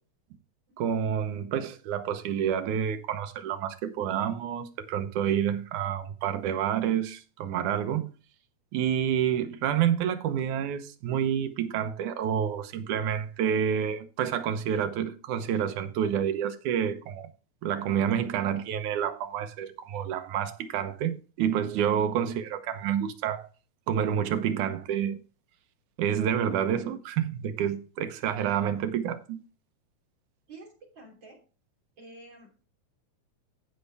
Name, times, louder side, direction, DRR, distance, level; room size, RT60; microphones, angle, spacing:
voice 1, 0.8-8.1 8.7-17.3 17.6-23.5 23.9-25.2 26.0-29.4, right 9 dB, 90° right, 2.4 m, -28 dB
voice 2, 28.3-28.6 30.5-31.4 32.0-32.7, right 2 dB, 40° right, 3.9 m, -49 dB
15.5 x 5.6 x 3.4 m
omnidirectional pair, 3.4 m